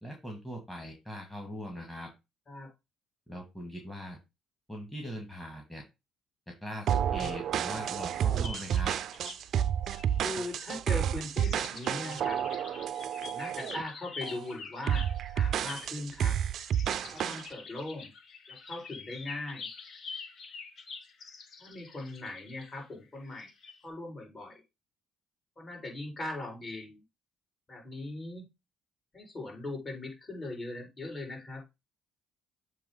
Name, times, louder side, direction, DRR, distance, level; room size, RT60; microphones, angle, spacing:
voice 1, 0.0-2.1 3.3-4.2 4.7-5.8 6.6-8.9, equal, 10° left, 1 dB, 2.0 m, -41 dB
sound 1, 6.9-13.8 14.2-14.5 14.9-17.5, right 9 dB, 65° right, 0.4 m, -30 dB
sound 2, 8.4-9.4 9.9-11.0 11.3-23.8, left 5 dB, 55° left, 1.3 m, -46 dB
voice 2, 10.2-12.4 13.2-16.4 17.1-18.1 18.5-19.7 21.6-23.5 23.8-24.6 25.6-27.0 27.7-28.5 29.1-31.6, left 2 dB, 35° left, 0 dB, 4.2 m, -40 dB
7.5 x 3.1 x 5.4 m, 0.24 s
supercardioid pair, 75°, 0 cm